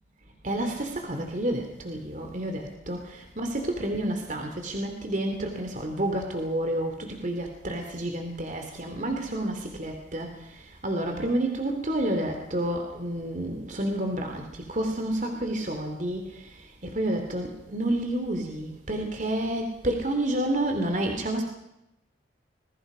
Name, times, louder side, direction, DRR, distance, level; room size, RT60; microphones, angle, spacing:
voice 1, 0.4-10.3 10.8-16.3 16.8-21.4, right 1 dB, 40° right, 4 dB, 2.7 m, -29 dB
27.5 x 21.0 x 5.0 m, 0.90 s
head